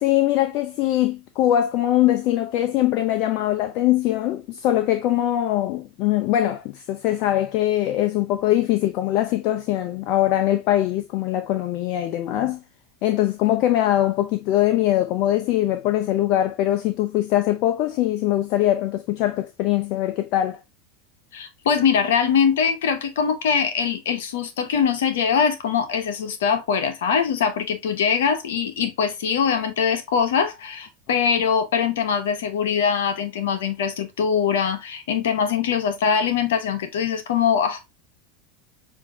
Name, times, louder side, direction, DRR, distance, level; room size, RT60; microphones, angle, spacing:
voice 1, 0.0-12.6 13.0-20.6, left 13 dB, 55° left, 0.5 m, -22 dB
voice 2, 21.3-37.9, left 7 dB, 85° left, 0.9 m, -22 dB
6.6 x 2.6 x 2.3 m
hypercardioid pair, 105°, 0 cm